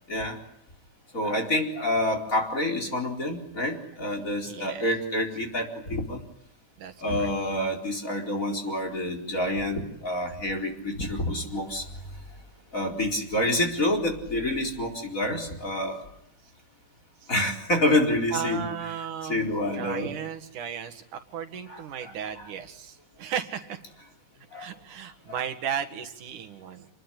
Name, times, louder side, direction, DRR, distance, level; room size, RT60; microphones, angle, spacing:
voice 1, 1.1-6.2 7.0-11.8 12.7-16.0 17.3-18.7 19.3-20.1 21.7-22.1 24.5-24.7, left 1 dB, 25° left, 3 dB, 4.5 m, -27 dB
voice 2, 4.5-4.9 6.8-7.3 17.2-17.3 18.3-23.8 24.5-26.9, right 8 dB, 80° right, 7 dB, 3.4 m, -35 dB
28.0 x 20.5 x 10.0 m, 0.74 s
omnidirectional pair, 3.5 m